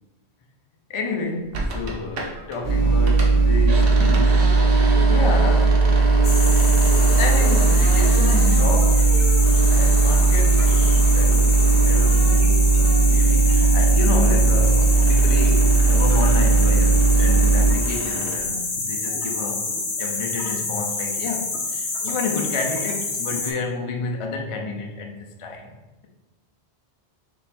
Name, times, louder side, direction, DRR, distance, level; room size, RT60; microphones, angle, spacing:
voice 1, 0.9-4.5 5.0-5.8 7.2-9.1 9.7-19.7 20.0-25.7, left 3 dB, 50° left, 2 dB, 0.3 m, -30 dB
sound 1, 1.5-2.6 2.9-13.3 13.6-18.4, right 2 dB, 60° right, 0.9 m, -33 dB
sound 2, 2.6-17.7, right 3 dB, 30° right, 1.0 m, -17 dB
sound 3, 6.2-23.5, left 3 dB, 80° left, 1.0 m, -27 dB
3.7 x 3.0 x 4.1 m, 1.1 s
omnidirectional pair, 1.1 m